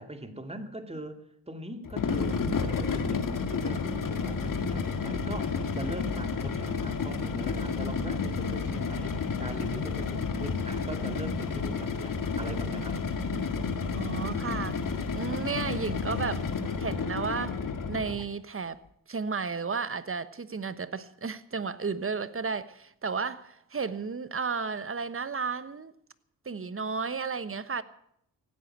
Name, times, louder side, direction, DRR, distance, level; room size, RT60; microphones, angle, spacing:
voice 1, 0.0-13.0, right 1 dB, 15° right, 2.6 m, -41 dB
sound 1, 1.8-18.3, left 5 dB, 55° left, 2.1 m, -31 dB
voice 2, 13.9-14.8 15.1-16.4 16.8-17.6 17.9-18.8 19.1-25.9 26.4-27.8, right 5 dB, 30° right, 1.2 m, -33 dB
16.5 x 9.3 x 8.9 m
supercardioid pair, 55°, 40 cm